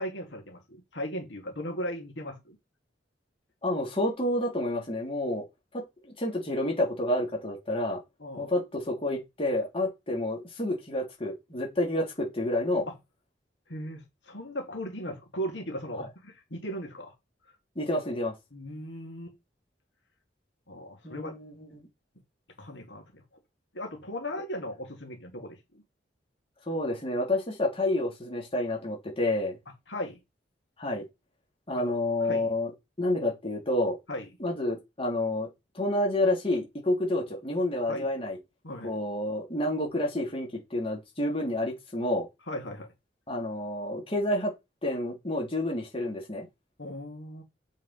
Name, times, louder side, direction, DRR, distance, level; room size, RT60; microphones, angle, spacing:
voice 1, 0.0-2.6 8.2-8.5 12.9-13.0 13.7-17.1 18.5-19.4 20.7-21.4 22.6-23.2 23.7-25.8 29.9-30.2 31.7-31.9 32.2-32.5 34.1-34.3 37.9-38.1 38.6-38.9 42.5-42.9 46.8-47.4, equal, 75° left, 2.4 m, -37 dB
voice 2, 3.6-5.4 5.7-8.0 8.4-12.9 16.0-16.1 17.7-18.3 21.0-21.9 26.7-29.6 30.8-31.1 31.7-32.7 33.0-34.0 34.4-35.5 35.7-38.4 38.8-42.3 43.3-44.5 44.8-46.5, left 1 dB, 30° left, 3.2 m, -29 dB
7.5 x 5.3 x 5.3 m
head